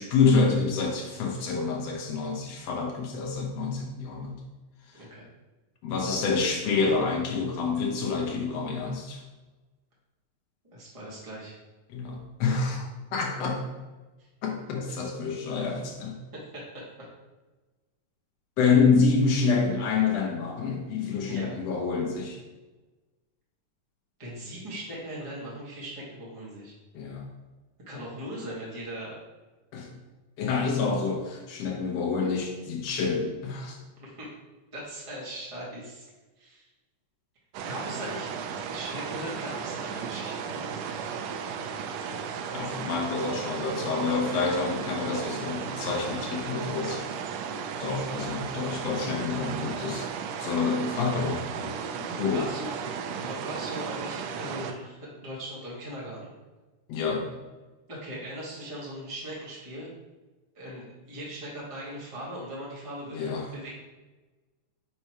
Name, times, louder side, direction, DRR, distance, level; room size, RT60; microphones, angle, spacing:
voice 1, 0.0-4.4 5.8-9.2 11.9-13.6 14.4-16.2 18.6-22.4 26.9-27.3 29.7-29.9 30.4-33.8 42.5-47.0 47.8-50.1 50.4-51.7 52.2-52.5 56.9-57.4 63.1-63.5, left 4 dB, 65° left, 1 dB, 1.9 m, -27 dB
voice 2, 4.9-5.3 10.7-11.6 15.2-15.4 16.3-17.1 21.3-21.5 24.2-26.7 27.9-29.1 34.0-34.3 34.7-36.1 36.4-36.7 37.6-38.3 38.7-40.6 52.1-52.7 53.1-56.3 57.9-59.9 60.5-63.8, right 1 dB, 20° right, -6 dB, 0.8 m, -39 dB
sound 1, 37.5-54.7, right 6 dB, 85° right, 1.5 m, -35 dB
5.5 x 4.4 x 4.7 m, 1.2 s
omnidirectional pair, 3.6 m